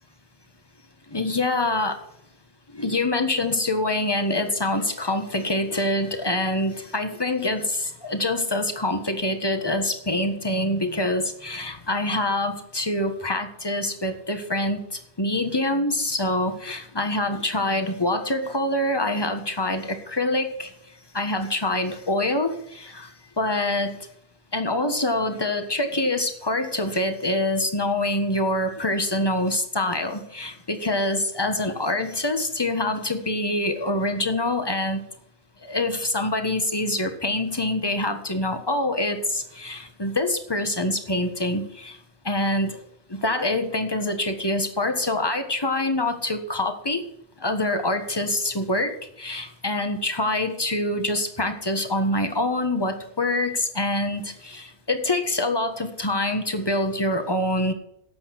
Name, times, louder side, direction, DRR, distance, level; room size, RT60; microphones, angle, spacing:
voice 1, 1.1-2.0 2.7-14.8 15.2-20.7 21.1-23.9 24.5-35.0 35.6-42.0 42.2-42.8 43.1-47.0 47.4-57.7, left 1 dB, 20° left, 7 dB, 1.5 m, -25 dB
12.5 x 8.4 x 6.0 m, 0.75 s
omnidirectional pair, 1.1 m